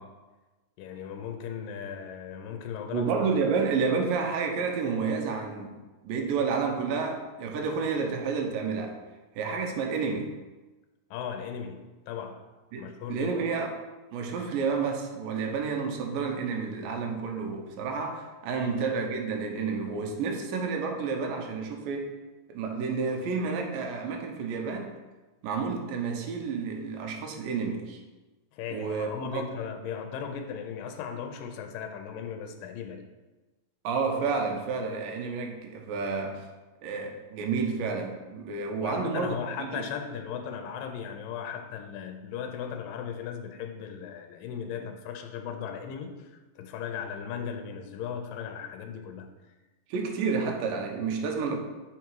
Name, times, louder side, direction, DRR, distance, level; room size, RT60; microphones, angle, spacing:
voice 1, 0.8-3.1 11.1-12.5 12.8-13.3 18.5-18.7 28.5-33.1 38.8-49.3, left 7 dB, 85° left, 2.4 m, -37 dB
voice 2, 2.9-5.7 6.0-9.0 9.4-10.3 12.7-13.7 14.1-22.1 22.5-24.9 25.4-28.0 28.7-29.4 33.8-36.5 36.8-39.8 49.9-51.6, right 5 dB, 85° right, 2.6 m, -30 dB
7.0 x 4.8 x 4.6 m
omnidirectional pair, 3.9 m